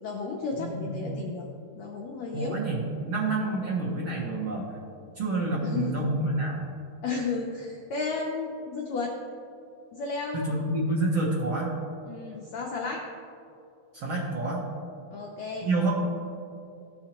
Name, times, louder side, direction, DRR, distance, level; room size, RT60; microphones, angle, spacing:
voice 1, 0.0-1.5 1.8-2.6 5.6-6.2 7.0-9.1 9.9-10.4 12.0-13.0 15.1-15.7, left 4 dB, 90° left, -1 dB, 1.5 m, -33 dB
voice 2, 0.6-1.2 2.3-4.6 5.2-6.6 10.3-11.7 13.9-14.6 15.6-16.1, right 2 dB, 85° right, -6 dB, 1.1 m, -28 dB
14.5 x 5.4 x 2.9 m, 2.6 s
omnidirectional pair, 4.0 m